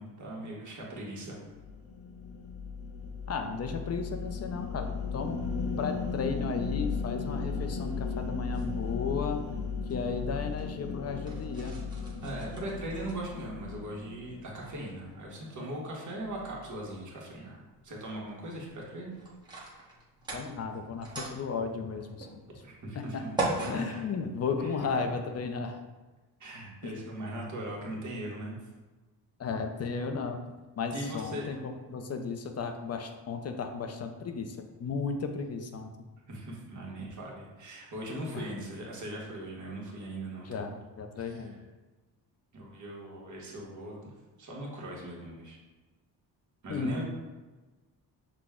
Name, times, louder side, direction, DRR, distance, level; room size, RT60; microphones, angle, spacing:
voice 1, 0.0-1.4 12.2-19.1 22.6-23.3 23.6-24.0 24.6-25.1 26.4-28.6 30.9-31.6 36.3-40.8 41.2-41.5 42.5-44.1 44.4-45.6 46.6-47.0, right 1 dB, 45° right, -3 dB, 1.3 m, -40 dB
sound 1, 1.5-15.1, left 5 dB, 85° left, 0.7 m, -36 dB
voice 2, 3.3-4.9 5.1-5.4 5.8-9.4 9.9-11.7 20.3-22.3 22.9-23.2 23.7-25.8 26.8-26.9 29.4-30.4 30.8-35.9 38.3-38.4 40.4-41.6 46.7-47.0, left 5 dB, 40° left, 5 dB, 0.5 m, -34 dB
sound 2, 7.9-25.0, right 2 dB, 10° right, 1.0 m, -42 dB
6.1 x 2.2 x 3.6 m, 1.2 s
cardioid pair, 110°, 41 cm